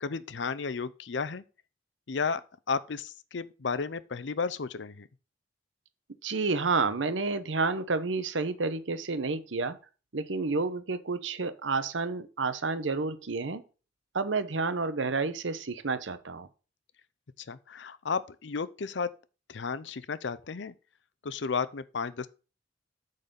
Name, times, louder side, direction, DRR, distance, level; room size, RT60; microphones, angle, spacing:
voice 1, 0.0-1.4 2.1-2.4 2.7-5.1 17.5-19.1 19.5-20.7 21.2-22.3, left 5 dB, 75° left, 0.6 m, -33 dB
voice 2, 6.2-9.8 10.1-13.6 14.1-16.5, right 4 dB, 85° right, 0.9 m, -30 dB
8.9 x 4.1 x 6.8 m
head